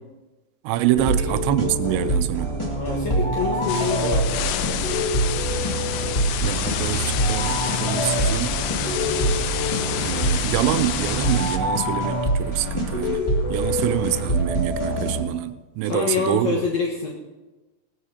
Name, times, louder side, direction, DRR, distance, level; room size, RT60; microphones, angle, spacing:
voice 1, 0.6-2.5 6.4-8.5 10.0-13.2 13.5-16.5, right 13 dB, 80° right, 11 dB, 2.6 m, -25 dB
sound 1, 0.9-15.2, right 1 dB, 40° left, 0.4 m, -25 dB
voice 2, 2.7-4.8 15.8-17.1, left 5 dB, 70° left, -3 dB, 1.6 m, -26 dB
sound 2, 3.7-11.6, left 11 dB, 85° left, 3.1 m, -28 dB
19.0 x 14.5 x 2.8 m, 1.1 s
omnidirectional pair, 5.3 m